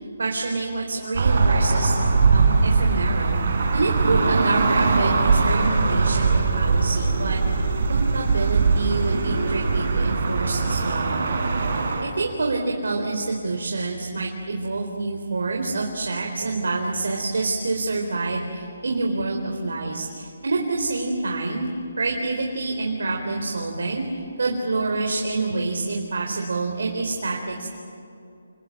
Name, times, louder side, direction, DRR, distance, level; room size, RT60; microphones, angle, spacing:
voice 1, 0.2-1.9 2.3-3.4 3.7-7.4 7.9-11.2 12.0-21.7 22.0-24.1 24.4-27.7, right 3 dB, 70° right, 0 dB, 4.1 m, -27 dB
sound 1, 1.1-12.0, right 4 dB, 45° right, 4.6 m, -21 dB
29.0 x 21.5 x 8.9 m, 2.5 s
hypercardioid pair, 175°, 0 cm